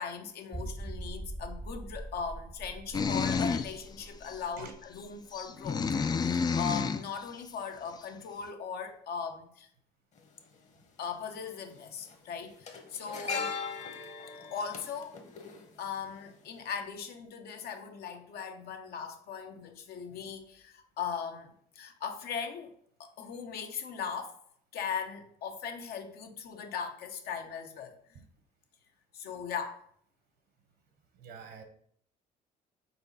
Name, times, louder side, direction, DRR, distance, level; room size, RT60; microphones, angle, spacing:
voice 1, 0.0-5.8 6.2-9.7 11.0-13.5 14.4-15.2 15.8-22.7 23.0-24.4 24.7-28.2 29.1-29.8, left 6 dB, 70° left, 5 dB, 0.9 m, -39 dB
sound 1, 0.5-6.0 6.3-6.4 6.9-7.0, right 2 dB, 10° right, 0.6 m, -43 dB
sound 2, 2.9-3.7 4.3-4.4 5.3-7.1, left 5 dB, 25° left, 0.4 m, -29 dB
sound 3, 10.2-10.3 11.5-11.7 12.0-16.3 16.6-16.8, left 5 dB, 45° left, 1.2 m, -39 dB
voice 2, 31.1-31.6, right 6 dB, 65° right, 7 dB, 1.1 m, -47 dB
4.4 x 4.0 x 5.4 m, 0.64 s
cardioid pair, 110°, 17 cm